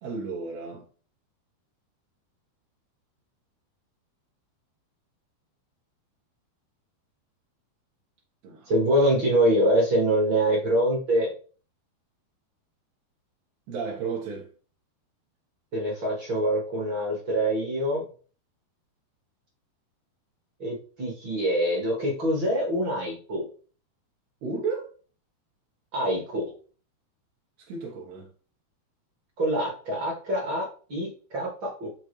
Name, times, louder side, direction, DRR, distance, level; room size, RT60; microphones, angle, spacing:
voice 1, 0.0-0.9 8.4-8.7 13.7-14.5 24.4-24.9 27.7-28.3, right 4 dB, 75° right, 3.0 m, -33 dB
voice 2, 8.7-11.3 15.7-18.0 20.6-23.4 25.9-26.4 29.4-31.9, right 1 dB, 50° right, 1.4 m, -25 dB
7.3 x 4.0 x 3.2 m
omnidirectional pair, 4.8 m